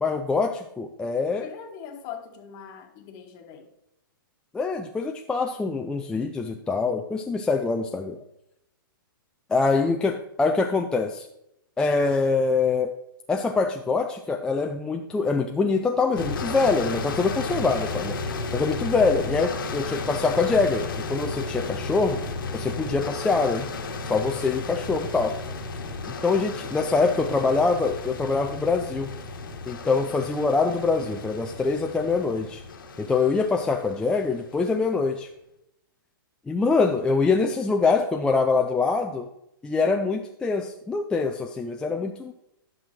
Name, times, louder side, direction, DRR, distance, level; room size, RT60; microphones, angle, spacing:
voice 1, 0.0-1.5 4.5-8.2 9.5-11.3 11.8-12.9 13.3-18.2 18.5-22.2 22.5-23.7 24.1-25.3 26.2-29.1 29.7-32.6 33.0-35.3 36.5-39.3 39.6-42.3, left 4 dB, 5° left, 3 dB, 0.4 m, -24 dB
voice 2, 1.4-3.7 9.8-10.0, left 8 dB, 35° left, 5 dB, 1.2 m, -41 dB
sound 1, 16.2-34.8, left 3 dB, 70° left, 1.3 m, -34 dB
11.0 x 6.1 x 3.1 m, 0.81 s
hypercardioid pair, 130°, 12 cm